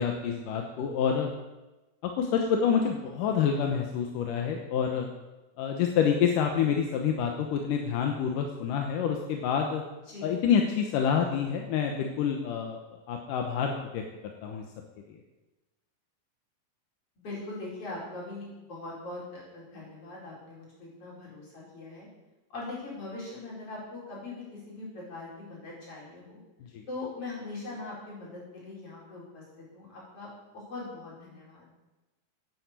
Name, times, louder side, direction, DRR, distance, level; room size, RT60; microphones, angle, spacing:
voice 1, 0.0-1.3 2.2-5.1 5.6-9.8 10.2-12.8 13.1-14.6 26.6-26.8, left 7 dB, 80° left, 3 dB, 2.6 m, -27 dB
voice 2, 17.2-22.1 22.5-26.4 26.9-31.7, left 2 dB, 45° left, -4 dB, 5.7 m, -41 dB
11.5 x 9.3 x 8.2 m, 1.1 s
omnidirectional pair, 3.7 m